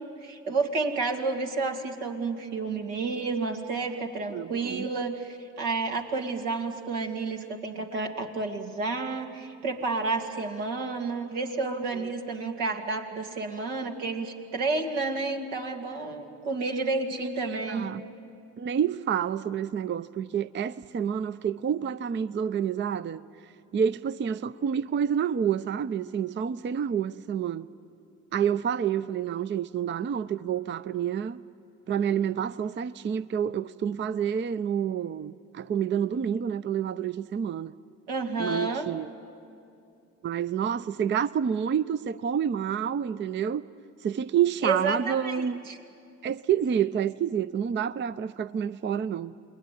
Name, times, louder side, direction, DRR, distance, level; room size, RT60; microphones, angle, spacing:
voice 1, 0.0-17.9 38.1-38.9 44.6-45.8, right 3 dB, 75° right, 2.4 m, -30 dB
voice 2, 4.3-4.9 17.4-18.0 18.6-27.7 28.3-31.4 31.9-37.7 38.4-39.1 40.2-43.7 44.0-45.6 46.2-49.3, right 8 dB, 30° right, 0.6 m, -28 dB
28.5 x 20.5 x 9.2 m
hypercardioid pair, 60°, 38 cm